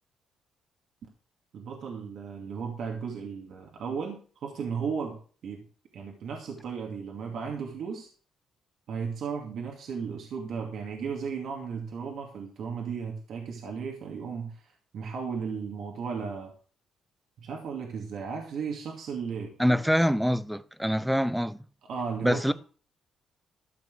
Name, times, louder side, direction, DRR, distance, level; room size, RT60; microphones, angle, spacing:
voice 1, 1.5-5.6 5.9-8.1 8.9-16.5 17.4-19.5 21.9-22.5, right 6 dB, 65° right, 2.4 m, -35 dB
voice 2, 19.6-21.6 22.2-22.5, equal, ahead, 0.7 m, -25 dB
13.5 x 6.1 x 6.3 m
cardioid pair, 90°, 0 cm